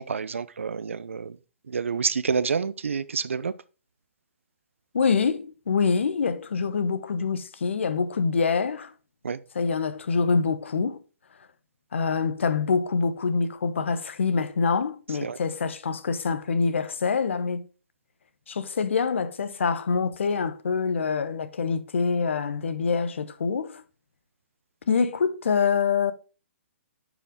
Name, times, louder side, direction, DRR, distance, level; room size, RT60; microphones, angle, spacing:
voice 1, 0.0-1.4 1.7-3.5 9.2-9.4 15.2-15.4, right 5 dB, 75° right, 0.6 m, -28 dB
voice 2, 4.9-8.9 9.5-11.0 11.9-17.7 18.5-23.8 24.9-26.1, left 5 dB, 70° left, 0.9 m, -25 dB
10.0 x 5.1 x 3.7 m
figure-of-eight pair, 125°, 7 cm